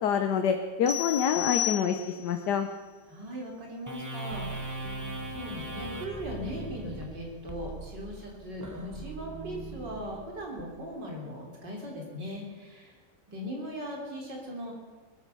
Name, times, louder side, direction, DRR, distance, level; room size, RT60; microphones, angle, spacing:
voice 1, 0.0-2.7, left 7 dB, 75° left, 6 dB, 1.5 m, -27 dB
sound 1, 0.9-2.4, left 12 dB, 55° left, 2.1 m, -32 dB
voice 2, 3.1-4.9 5.3-13.0 13.3-14.7, equal, 85° right, 0 dB, 4.0 m, -39 dB
sound 2, 3.9-10.6, right 2 dB, 10° right, 1.3 m, -39 dB
20.5 x 9.7 x 6.8 m, 1.4 s
omnidirectional pair, 1.9 m